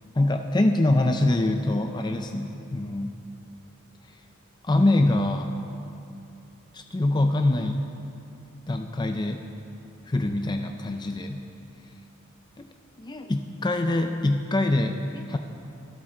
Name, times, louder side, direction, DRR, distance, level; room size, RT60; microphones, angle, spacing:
voice 1, 0.2-3.2 4.6-5.5 6.7-7.8 8.7-9.4 10.1-11.4 12.6-12.7 13.0-15.4, left 2 dB, 20° left, 6 dB, 0.4 m, -24 dB
25.0 x 8.6 x 3.8 m, 2.7 s
head